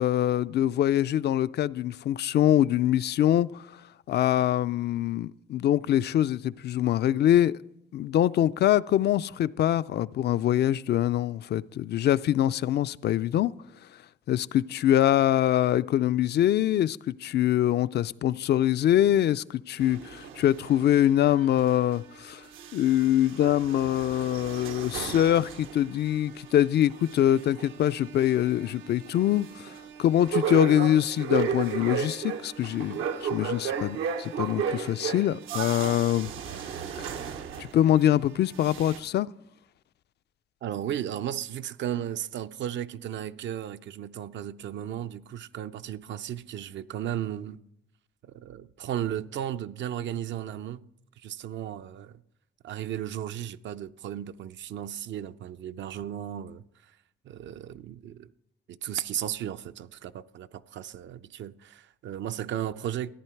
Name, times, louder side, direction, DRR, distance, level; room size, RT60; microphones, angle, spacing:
voice 1, 0.0-3.7 4.1-7.6 7.9-13.5 14.3-22.5 22.7-29.7 30.0-36.3 37.6-39.3, left 12 dB, 60° left, 0.4 m, -24 dB
sound 1, 19.8-22.2 22.5-38.2 38.5-39.0, right 7 dB, 85° right, 1.0 m, -35 dB
voice 2, 40.6-47.6 48.3-50.8 51.2-52.2 52.6-56.6 57.2-58.3 58.7-63.1, right 11 dB, 65° right, 0.5 m, -35 dB
14.0 x 10.0 x 4.5 m
cardioid pair, 90°, 20 cm